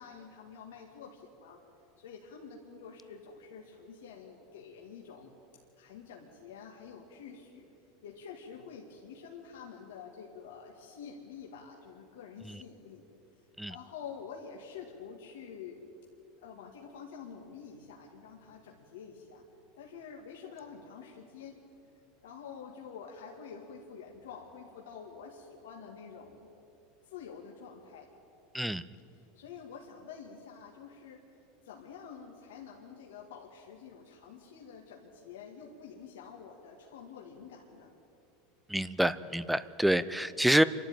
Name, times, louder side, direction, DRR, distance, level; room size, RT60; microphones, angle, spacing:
voice 1, 0.0-1.6 2.0-5.3 5.8-7.7 8.0-13.0 13.7-15.8 16.4-19.4 19.8-21.6 22.2-26.5 27.0-28.1 29.3-31.4 31.6-37.9, left 6 dB, 85° left, -1 dB, 2.2 m, -48 dB
voice 2, 38.7-40.6, right 1 dB, 5° right, 16 dB, 0.7 m, -27 dB
27.5 x 12.0 x 9.1 m, 2.9 s
supercardioid pair, 115°, 0 cm